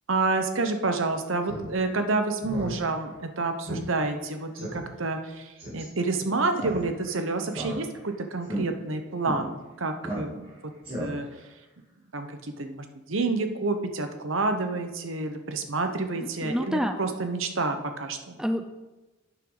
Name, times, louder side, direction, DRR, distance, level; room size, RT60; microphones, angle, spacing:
voice 1, 0.1-10.7 11.0-11.3 12.1-18.4, right 3 dB, 75° right, 6 dB, 1.0 m, -29 dB
Speech synthesizer, 1.4-1.7 2.0-2.1 2.4-2.7 3.1-3.2 3.7-3.8 4.1-4.2 4.6-4.8 5.6-5.8 6.5-7.1 7.5-8.1 8.4-8.6 9.2-9.4 10.0-10.5 10.8-11.4, right 1 dB, 25° right, 3.6 m, -34 dB
voice 2, 16.2-17.0 18.4-18.7, equal, 5° right, 7 dB, 0.4 m, -28 dB
11.0 x 9.1 x 4.0 m, 1.1 s
head